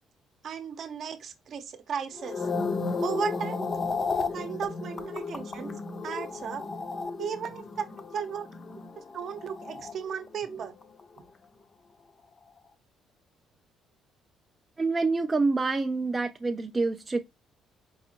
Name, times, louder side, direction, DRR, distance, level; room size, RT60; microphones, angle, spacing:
voice 1, 0.4-2.5 3.0-3.6 4.3-5.7 6.0-6.7 7.2-7.9 8.1-8.5 9.1-10.8, right 7 dB, 50° right, 0.7 m, -35 dB
sound 1, 2.1-10.6 10.8-11.2, left 4 dB, 30° left, 0.5 m, -33 dB
voice 2, 14.8-17.3, right 3 dB, 20° right, 0.3 m, -27 dB
4.6 x 2.5 x 2.8 m
cardioid pair, 145°, 0 cm